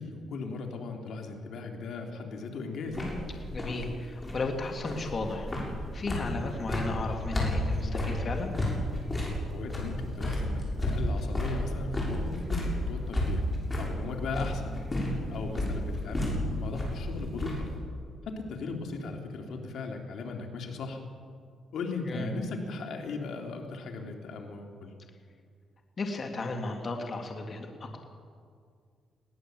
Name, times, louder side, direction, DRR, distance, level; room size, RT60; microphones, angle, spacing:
voice 1, 0.0-3.0 9.5-13.4 13.8-14.8 15.3-17.7 18.3-21.0 21.7-24.9, left 3 dB, 70° left, 2 dB, 2.9 m, -37 dB
sound 1, 2.9-17.8, left 1 dB, 25° left, 7.4 m, -32 dB
voice 2, 3.5-5.5 5.9-8.5 22.1-22.3 26.0-28.0, left 2 dB, 40° left, 3 dB, 2.5 m, -34 dB
21.0 x 18.0 x 7.8 m, 2.1 s
cardioid pair, 95°, 0 cm